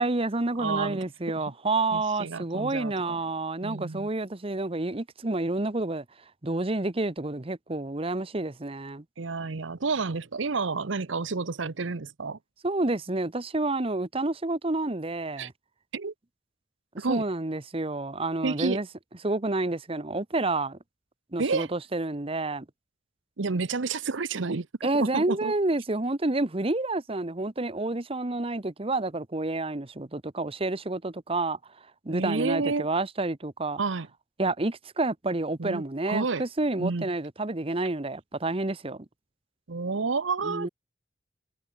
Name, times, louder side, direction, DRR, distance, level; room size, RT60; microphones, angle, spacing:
voice 1, 0.0-6.0 6.4-9.0 12.6-15.5 17.1-18.9 19.2-20.8 21.3-22.6 24.8-31.6 32.0-33.8 34.4-39.0 40.4-40.7, right 2 dB, 30° right, 1.0 m, -29 dB
voice 2, 0.6-1.0 1.3-1.4 1.9-3.2 3.6-4.1 9.2-12.4 15.4-15.5 15.9-16.1 17.0-17.2 18.4-18.8 21.4-21.7 23.4-24.7 24.9-25.5 32.1-32.9 33.8-34.1 35.6-36.4 36.8-37.1 39.7-40.7, right 4 dB, 80° right, 0.9 m, -30 dB
head